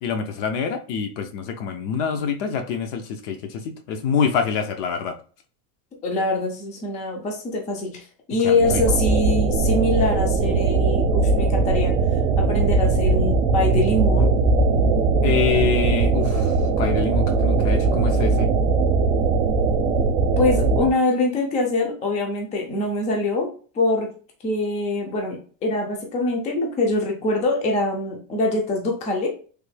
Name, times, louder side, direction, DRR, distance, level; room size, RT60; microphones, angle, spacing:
voice 1, 0.0-5.2 8.4-8.8 15.2-18.5, left 6 dB, 60° left, 6 dB, 0.6 m, -26 dB
voice 2, 6.0-12.0 12.4-14.3 20.4-24.1 24.4-29.3, left 2 dB, 15° left, 1 dB, 0.4 m, -24 dB
sound 1, 8.6-20.9, right 3 dB, 65° right, 0.6 m, -20 dB
3.2 x 2.2 x 3.2 m, 0.40 s
cardioid pair, 160°, 42 cm